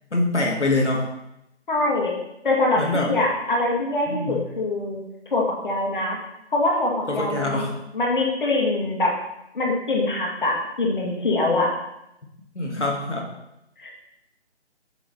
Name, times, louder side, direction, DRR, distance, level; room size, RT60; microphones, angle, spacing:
voice 1, 0.1-1.1 2.8-3.1 4.1-4.4 7.1-7.8 12.5-13.3, left 2 dB, 80° left, -1 dB, 1.5 m, -24 dB
voice 2, 1.7-2.1 2.4-5.0 5.3-6.2 6.5-7.6 7.9-9.1 9.5-11.7 13.8-13.9, left 2 dB, 45° left, -1 dB, 1.6 m, -23 dB
7.4 x 3.6 x 4.1 m, 0.85 s
figure-of-eight pair, 155°, 34 cm